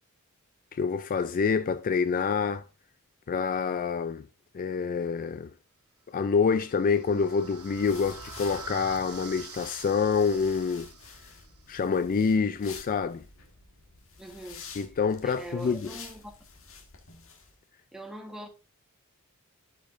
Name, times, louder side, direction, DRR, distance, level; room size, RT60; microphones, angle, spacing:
voice 1, 0.7-2.6 3.3-4.2 4.5-5.5 6.1-10.9 11.7-13.2 14.8-15.9, left 5 dB, 40° left, 0.3 m, -27 dB
sound 1, 6.4-11.4, right 4 dB, 90° right, 1.5 m, -45 dB
sound 2, 7.3-17.5, left 5 dB, 65° left, 1.5 m, -49 dB
voice 2, 14.2-14.7 15.2-16.3 17.9-18.5, right 1 dB, ahead, 1.4 m, -42 dB
12.0 x 5.2 x 2.6 m
head